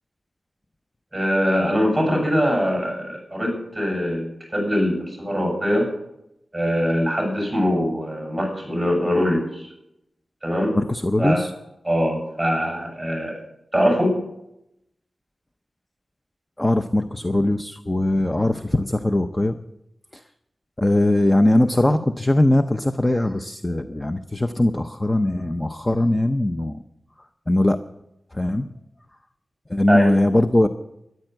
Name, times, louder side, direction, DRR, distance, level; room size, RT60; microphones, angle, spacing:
voice 1, 1.1-5.9 6.5-9.7 10.4-10.8 11.2-11.4 11.8-13.4 13.7-14.2 29.9-30.1, equal, 5° right, 0 dB, 7.0 m, -22 dB
voice 2, 10.7-11.5 16.6-19.6 20.8-26.8 27.5-27.8 28.3-28.7 29.7-30.7, left 1 dB, 15° left, 8 dB, 0.6 m, -20 dB
13.5 x 11.0 x 7.9 m, 0.84 s
wide cardioid pair, 130°, 0 cm